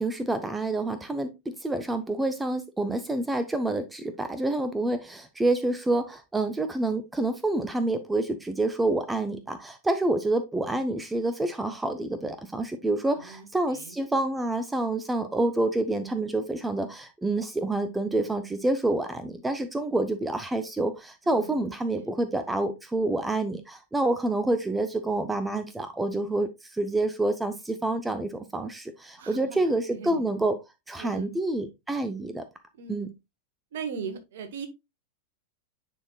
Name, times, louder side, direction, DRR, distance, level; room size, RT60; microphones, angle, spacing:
voice 1, 0.0-30.6 30.9-32.4 32.9-33.1, right 2 dB, 10° right, 0.7 m, -28 dB
voice 2, 13.1-14.0 21.2-21.7 22.0-22.1 29.2-29.6 29.9-30.2 31.0-31.3 32.7-33.1 33.7-34.7, right 6 dB, 60° right, 1.3 m, -39 dB
10.0 x 4.3 x 2.3 m
figure-of-eight pair, 90°, 0 cm